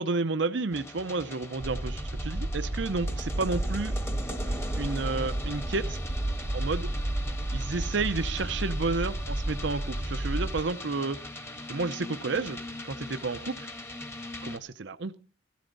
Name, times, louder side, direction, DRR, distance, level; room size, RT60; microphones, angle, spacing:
voice 1, 0.0-4.0 4.3-6.0 6.5-6.9 7.5-11.2 11.7-12.6 12.8-13.7 14.4-15.2, right 3 dB, 65° right, 11 dB, 0.7 m, -31 dB
sound 1, 0.7-14.6, left 1 dB, 15° left, 1.4 m, -41 dB
sound 2, 1.6-10.6, right 1 dB, 30° right, 0.7 m, -32 dB
16.5 x 13.5 x 3.9 m, 0.35 s
head